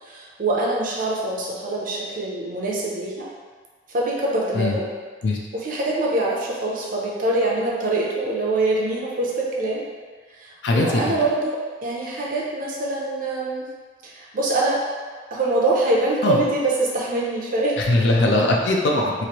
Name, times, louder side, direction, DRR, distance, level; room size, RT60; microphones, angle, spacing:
voice 1, 0.0-3.3 3.9-4.9 5.5-9.8 10.3-13.6 14.0-14.8 15.3-17.8, right 2 dB, 45° right, -3 dB, 0.5 m, -24 dB
voice 2, 10.6-11.0 16.2-16.4 17.8-19.3, left 2 dB, 65° left, 0 dB, 0.5 m, -20 dB
3.1 x 2.5 x 2.9 m, 1.5 s
head